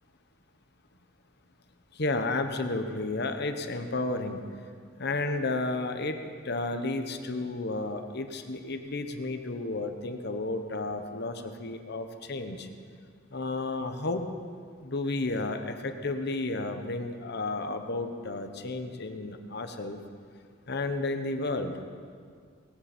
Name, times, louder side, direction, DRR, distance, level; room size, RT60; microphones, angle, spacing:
voice 1, 2.0-4.4 5.0-6.2 6.4-12.7 13.3-14.3 14.8-20.0 20.7-21.7, left 2 dB, 55° left, 7 dB, 1.1 m, -32 dB
18.5 x 17.0 x 4.4 m, 2.1 s
head